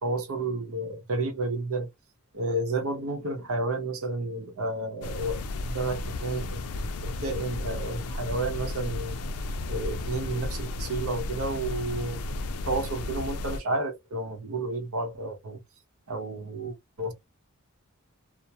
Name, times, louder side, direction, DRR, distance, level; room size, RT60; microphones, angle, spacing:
voice 1, 0.0-1.9 2.3-9.2 9.7-12.2 12.7-15.6 16.1-17.1, right 2 dB, 70° right, 0.7 m, -31 dB
sound 1, 5.0-13.6, left 2 dB, 80° left, 0.4 m, -34 dB
2.2 x 2.1 x 2.6 m
head